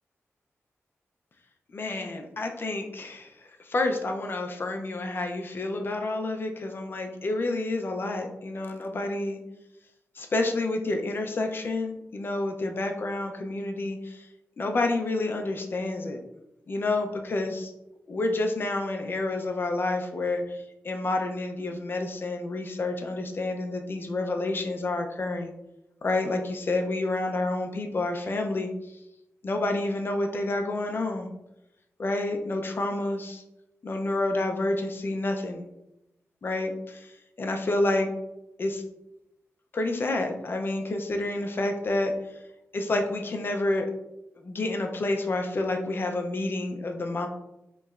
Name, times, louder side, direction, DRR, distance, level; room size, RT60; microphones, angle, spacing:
voice 1, 1.7-3.3 3.7-9.4 10.2-14.3 14.6-16.2 16.7-17.7 18.1-25.5 26.0-28.7 29.4-31.3 32.0-33.4 33.8-35.6 36.4-37.1 37.4-38.1 38.6-38.8 39.7-42.1 42.7-43.9 44.4-47.3, left 2 dB, 45° left, 4 dB, 0.5 m, -29 dB
5.2 x 3.0 x 2.4 m, 0.87 s
wide cardioid pair, 120°, 5 cm